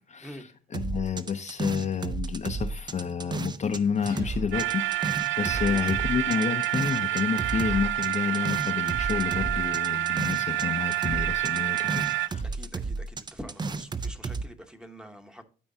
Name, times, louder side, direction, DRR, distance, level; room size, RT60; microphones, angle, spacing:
voice 1, 0.7-12.4, left 6 dB, 40° left, 0.6 m, -30 dB
sound 1, 0.7-3.8 4.1-10.7 10.9-14.4, right 4 dB, 25° right, 0.5 m, -33 dB
sound 2, 4.0-5.0, right 2 dB, 60° right, 3.3 m, -43 dB
sound 3, 4.5-12.3, right 15 dB, 80° right, 0.4 m, -28 dB
voice 2, 12.4-15.5, equal, 5° right, 1.0 m, -45 dB
12.5 x 4.5 x 2.7 m
cardioid pair, 100°, 19 cm